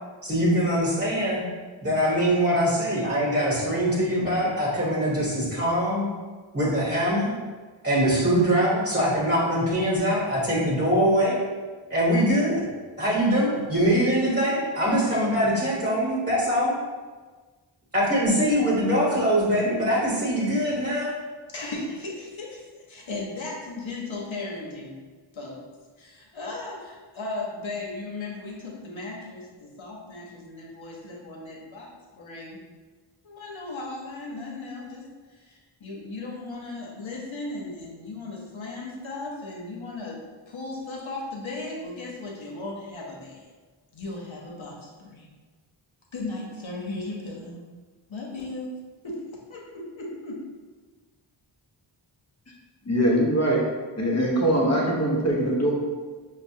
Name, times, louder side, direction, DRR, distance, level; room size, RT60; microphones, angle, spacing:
voice 1, 0.2-1.4 1.8-6.1 6.5-7.4 7.8-11.4 11.9-12.6 13.0-16.7 17.9-21.2, equal, 20° right, -6 dB, 0.9 m, -23 dB
voice 2, 21.5-25.0 25.3-25.6 26.0-32.6 33.2-40.2 40.5-43.5 43.9-45.3 46.1-47.6 48.1-48.7 49.0-49.2 49.5-50.4, left 2 dB, 75° left, -3 dB, 0.9 m, -36 dB
voice 3, 52.9-53.6 54.0-55.7, right 1 dB, 35° left, -3 dB, 0.9 m, -22 dB
5.6 x 2.1 x 2.7 m, 1.4 s
wide cardioid pair, 55°, 48 cm